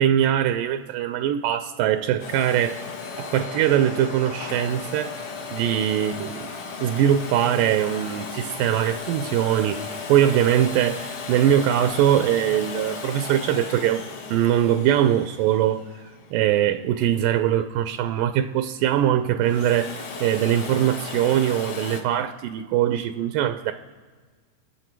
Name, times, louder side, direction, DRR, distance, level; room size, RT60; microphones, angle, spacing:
voice 1, 0.0-2.8 3.2-5.1 5.5-6.5 6.8-14.0 14.3-15.8 16.3-19.9 20.2-23.7, right 11 dB, 80° right, 2.2 m, -22 dB
Domestic sounds home sounds, 2.2-17.0 19.3-22.0, left 4 dB, 55° left, 1.6 m, -36 dB
29.0 x 9.7 x 4.6 m
omnidirectional pair, 3.9 m